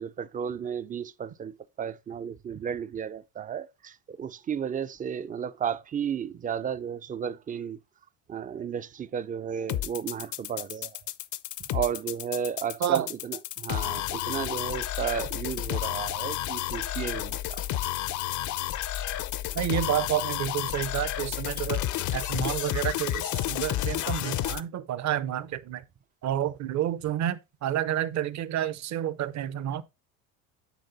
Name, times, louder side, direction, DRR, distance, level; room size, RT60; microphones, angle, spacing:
voice 1, 0.0-7.8 8.3-11.0 11.7-17.6, right 8 dB, 20° right, 0.4 m, -33 dB
sound 1, 9.7-24.6, left 13 dB, 55° left, 0.7 m, -31 dB
voice 2, 19.5-21.8 22.1-25.8 26.2-29.8, right 11 dB, 45° right, 0.8 m, -29 dB
9.6 x 3.8 x 4.0 m
supercardioid pair, 100°, 37 cm